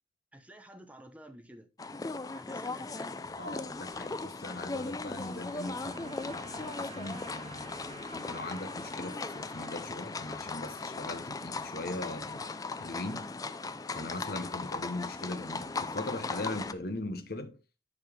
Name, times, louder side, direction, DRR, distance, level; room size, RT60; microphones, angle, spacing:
voice 1, 0.3-1.7 2.3-3.3, right 1 dB, 10° right, 0.8 m, -51 dB
sound 1, 1.8-16.7, left 3 dB, 20° left, 0.4 m, -38 dB
sound 2, 3.2-8.4, equal, 45° right, 2.2 m, -60 dB
voice 2, 3.4-12.4 12.8-13.3 13.9-17.6, left 2 dB, 55° left, 1.1 m, -40 dB
sound 3, 4.5-11.6, right 3 dB, 30° right, 1.7 m, -53 dB
9.8 x 4.6 x 3.4 m
head